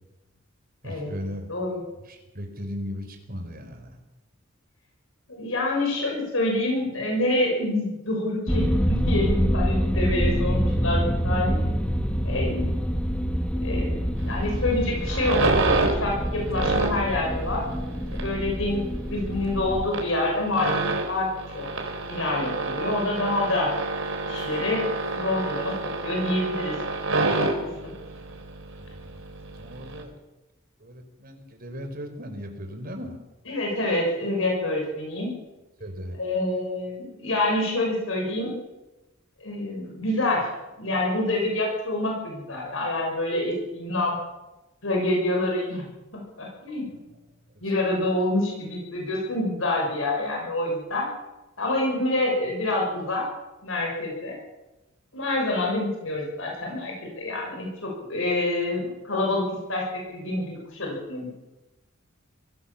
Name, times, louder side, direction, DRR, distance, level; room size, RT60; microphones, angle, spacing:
voice 1, 0.8-1.5 2.1-4.0 28.8-29.2 29.6-30.1 30.8-33.2 35.8-36.2 46.9-47.2 47.5-47.6, equal, 45° right, 5 dB, 4.3 m, -37 dB
voice 2, 1.5-1.8 5.3-11.6 12.2-12.7 13.6-15.5 15.9-17.6 18.1-20.8 21.0-21.3 21.5-21.7 22.1-23.7 24.3-25.7 26.0-26.8 27.4-27.9 33.5-35.3 36.2-38.6 39.4-44.2 44.8-45.9 46.1-46.9 47.6-51.1 51.6-53.2 53.6-54.4 55.1-61.3, left 2 dB, 75° left, 0 dB, 6.6 m, -27 dB
sound 1, 8.5-19.9, equal, 5° left, 1.3 m, -26 dB
sound 2, 14.2-30.0, right 2 dB, 75° right, 4.0 m, -29 dB
23.5 x 17.0 x 7.2 m, 1.0 s
head